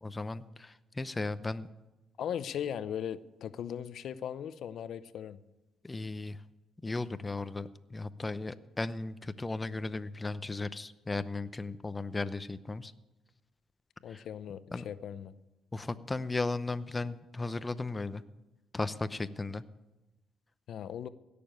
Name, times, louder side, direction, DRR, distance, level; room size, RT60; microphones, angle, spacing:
voice 1, 0.0-1.7 5.8-6.4 6.8-12.9 14.1-14.2 14.7-14.9 15.7-18.2 18.7-19.6, left 3 dB, 20° left, 14 dB, 0.7 m, -36 dB
voice 2, 2.2-5.4 14.0-15.3 20.7-21.1, left 9 dB, 70° left, 15 dB, 0.7 m, -38 dB
17.0 x 6.9 x 9.4 m, 1.0 s
cardioid pair, 90°, 0 cm